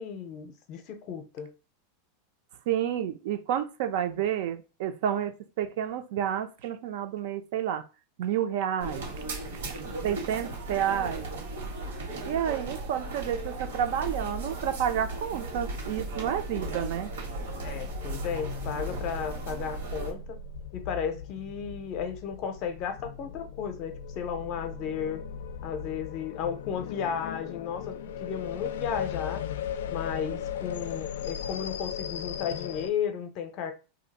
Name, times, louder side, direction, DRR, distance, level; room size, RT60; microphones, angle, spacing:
voice 1, 0.0-1.5 17.6-20.4 20.7-25.2 25.6-27.9 28.2-29.4 29.9-33.7, left 7 dB, 35° left, 0.5 m, -34 dB
voice 2, 2.7-7.8 8.2-9.1 10.0-11.3 12.2-17.1, right 10 dB, 55° right, 0.5 m, -30 dB
sound 1, 8.8-20.1, right 2 dB, 90° right, 1.5 m, -36 dB
sound 2, 16.0-32.9, left 8 dB, 85° left, 0.3 m, -38 dB
2.7 x 2.5 x 4.0 m
supercardioid pair, 170°, 0 cm